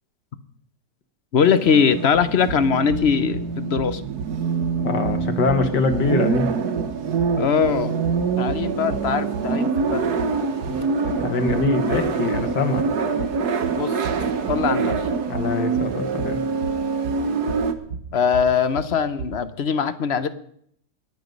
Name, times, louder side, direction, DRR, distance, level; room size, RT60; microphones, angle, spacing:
voice 1, 1.3-4.0 7.4-8.0 8.4-10.1 13.8-14.1 14.5-15.1 18.1-20.3, left 6 dB, 45° left, 12 dB, 0.9 m, -21 dB
sound 1, 1.4-17.7, right 5 dB, 65° right, 1.7 m, -25 dB
sound 2, 2.1-19.5, right 5 dB, 80° right, 1.6 m, -36 dB
voice 2, 4.8-6.5 10.7-10.8 11.2-12.9 15.3-16.4, left 4 dB, 75° left, 7 dB, 2.1 m, -23 dB
23.0 x 9.4 x 5.3 m, 0.66 s
omnidirectional pair, 1.9 m